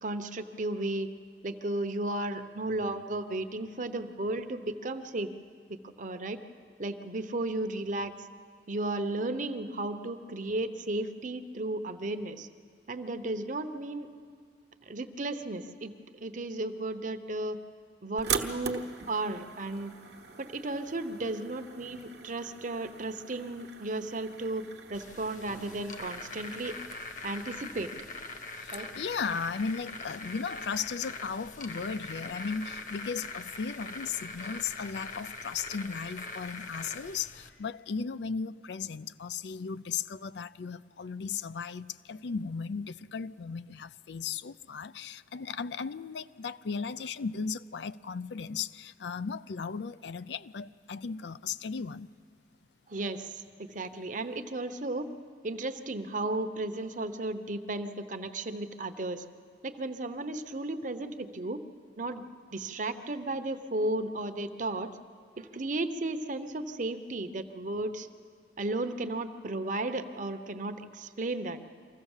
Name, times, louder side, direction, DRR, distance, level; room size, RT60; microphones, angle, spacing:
voice 1, 0.0-1.1 1.4-5.3 5.8-6.4 6.8-8.1 8.7-12.5 12.9-14.1 14.8-17.6 18.0-19.9 20.4-24.6 24.9-26.8 27.2-27.9 28.7-28.9 52.9-55.1 55.4-59.2 59.6-61.6 62.0-62.2 62.5-64.9 65.4-68.1 68.6-71.6, right 2 dB, 45° right, 0.9 m, -34 dB
sound 1, 18.2-26.9, right 6 dB, 65° right, 1.2 m, -41 dB
sound 2, 24.9-37.5, left 3 dB, 45° left, 1.3 m, -42 dB
voice 2, 28.6-52.1, left 5 dB, 70° left, 0.5 m, -36 dB
24.5 x 15.5 x 7.3 m
head